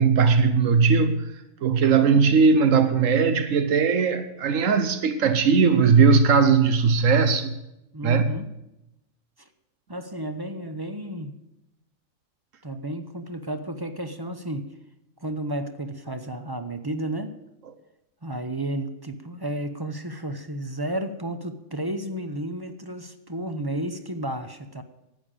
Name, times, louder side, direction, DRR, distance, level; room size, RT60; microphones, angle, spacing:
voice 1, 0.0-1.3 1.6-7.5 8.0-8.3, right 5 dB, 85° right, 1.2 m, -19 dB
voice 2, 7.9-8.5 9.4-9.5 9.9-11.4 12.6-14.7 15.2-17.3 18.2-24.8, right 1 dB, 20° right, 0.7 m, -32 dB
11.5 x 8.7 x 8.8 m
omnidirectional pair, 1.3 m